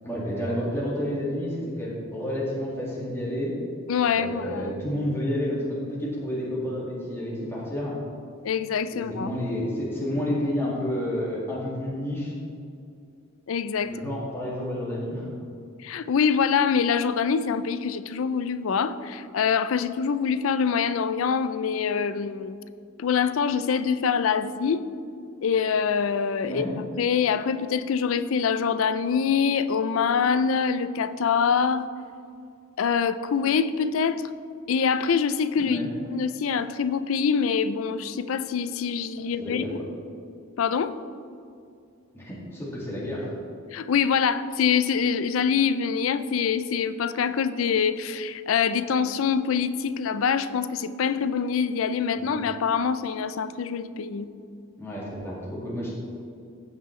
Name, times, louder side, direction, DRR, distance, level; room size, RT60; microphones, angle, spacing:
voice 1, 0.0-3.5 4.1-7.9 8.9-12.3 13.8-15.3 26.4-26.7 35.6-35.9 39.4-39.7 42.1-43.3 52.2-52.3 54.8-55.9, equal, 10° left, -7 dB, 1.9 m, -30 dB
voice 2, 3.9-4.7 8.4-9.3 13.5-14.1 15.8-22.6 23.0-24.9 25.4-26.7 27.0-31.9 32.8-34.2 34.7-35.8 36.1-39.6 40.6-40.9 43.7-54.3, left 6 dB, 75° left, 13 dB, 0.4 m, -25 dB
15.5 x 5.5 x 3.2 m, 2.4 s
head